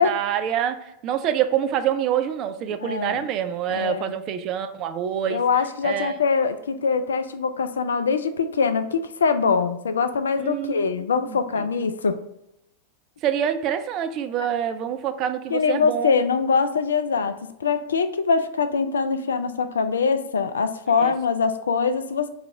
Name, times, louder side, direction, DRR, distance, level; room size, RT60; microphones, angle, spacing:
voice 1, 0.0-5.4 5.8-6.2 10.4-10.9 11.2-11.4 13.2-16.1 21.0-21.1, right 9 dB, 35° right, 9 dB, 0.3 m, -26 dB
voice 2, 2.8-3.3 3.7-4.1 5.3-12.2 15.5-22.3, left 5 dB, 70° left, 10 dB, 0.3 m, -23 dB
4.0 x 2.8 x 3.3 m, 0.84 s
figure-of-eight pair, 90°, 0 cm